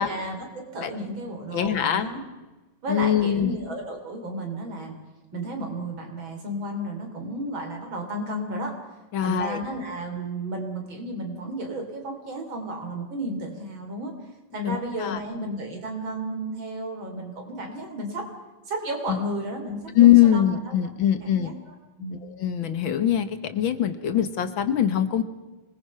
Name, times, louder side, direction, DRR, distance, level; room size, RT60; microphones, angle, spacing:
voice 1, 0.0-2.2 2.8-5.0 5.3-8.8 9.2-14.1 14.5-18.3 18.7-20.8 21.2-21.5 22.0-22.2, right 1 dB, 65° right, 3 dB, 4.3 m, -33 dB
voice 2, 1.5-2.1 2.9-3.6 9.1-9.6 14.7-15.2 19.1-19.2 19.9-21.5 22.2-25.2, left 11 dB, 65° left, 11 dB, 1.9 m, -22 dB
26.0 x 20.0 x 5.7 m, 1.2 s
omnidirectional pair, 2.3 m